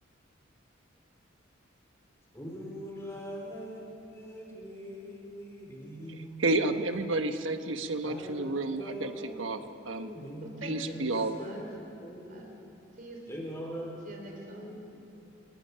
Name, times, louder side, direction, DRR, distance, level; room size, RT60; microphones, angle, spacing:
voice 1, 2.3-3.8 4.1-6.6 8.0-9.5 10.0-11.0 11.4-12.4 13.3-13.9 14.4-15.0, equal, 15° left, -2 dB, 4.5 m, -42 dB
voice 2, 6.1-9.6 9.9-10.1 10.6-11.4, right 2 dB, 85° right, 7 dB, 1.2 m, -31 dB
voice 3, 10.4-11.6 12.3-13.2 14.0-14.8, right 1 dB, 45° right, 1 dB, 4.1 m, -46 dB
28.5 x 19.5 x 5.7 m, 3.0 s
head